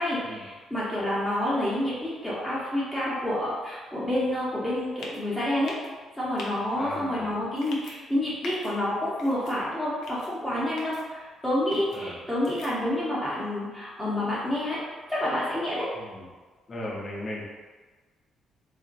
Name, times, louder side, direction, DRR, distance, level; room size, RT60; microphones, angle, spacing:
voice 1, 0.0-5.7 6.1-14.8 15.1-15.9, left 1 dB, 5° left, -9 dB, 0.9 m, -28 dB
sound 1, 5.0-5.2 5.6-5.9 6.4-6.5 7.6-7.9 8.4-8.7 9.2-9.5 10.0-10.3 10.8-11.0 11.7-12.0 12.4-12.7, left 3 dB, 75° left, 0.5 m, -42 dB
voice 2, 6.8-7.3 11.9-12.2 16.0-16.3 16.7-17.4, left 1 dB, 30° left, -3 dB, 0.6 m, -37 dB
2.5 x 2.1 x 3.8 m, 1.4 s
cardioid pair, 105°, 0 cm